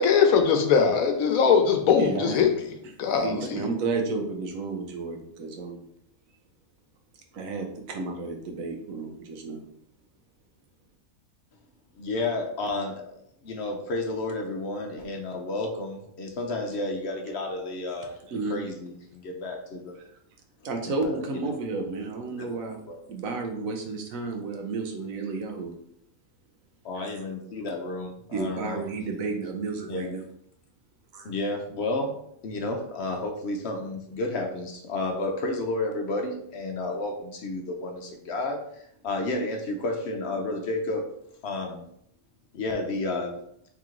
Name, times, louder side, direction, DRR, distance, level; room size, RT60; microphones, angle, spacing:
voice 1, 0.0-2.6 3.0-3.6, left 6 dB, 90° left, 5 dB, 1.1 m, -21 dB
voice 2, 2.0-2.4 3.2-5.8 7.3-9.6 18.3-18.6 20.6-22.8 23.1-25.7 27.0-27.2 28.3-30.2 31.1-31.3, right 3 dB, 75° right, 3 dB, 1.1 m, -32 dB
voice 3, 12.0-13.1 13.4-18.1 18.5-20.0 21.0-21.2 22.4-23.0 26.8-28.8 29.9-30.1 31.2-32.2 32.4-38.6 39.0-41.1 41.4-41.8 42.5-43.3, left 2 dB, 60° left, 3 dB, 0.8 m, -31 dB
3.6 x 3.0 x 3.7 m, 0.71 s
omnidirectional pair, 1.4 m